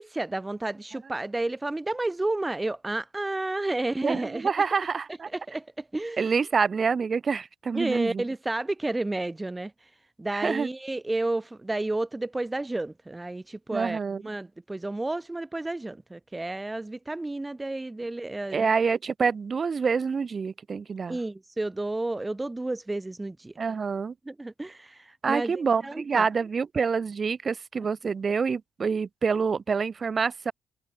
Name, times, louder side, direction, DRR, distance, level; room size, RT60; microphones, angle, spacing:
voice 1, 0.0-4.5 5.3-6.2 7.7-9.7 10.2-18.7 21.1-23.5 24.2-26.3, right 2 dB, 15° right, 1.0 m, -31 dB
voice 2, 4.0-5.3 6.2-8.2 10.3-10.7 13.7-14.2 18.5-21.2 23.6-24.1 25.2-30.5, right 5 dB, 40° right, 0.8 m, -27 dB
cardioid pair, 90°, 0 cm